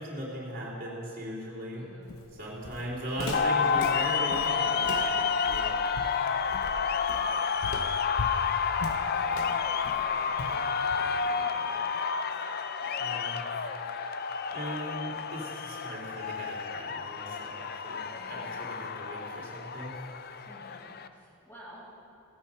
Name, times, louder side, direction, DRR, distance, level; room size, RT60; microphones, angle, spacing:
voice 1, 0.0-1.9 2.4-5.1 5.5-6.0 13.0-13.7 14.5-20.0, right 1 dB, 40° right, -5 dB, 3.3 m, -38 dB
voice 2, 1.7-2.1 5.0-5.4 7.1-7.4 7.7-7.8 8.8-11.9 12.8-13.2 18.1-18.6 20.4-20.9 21.1-21.8, equal, 15° left, -11 dB, 2.5 m, -53 dB
Walk footsteps, 2.1-11.3, left 3 dB, 75° left, 0.8 m, -40 dB
sound 1, 3.3-21.1, left 6 dB, 45° left, 0.5 m, -30 dB
16.5 x 8.9 x 5.8 m, 2.7 s
head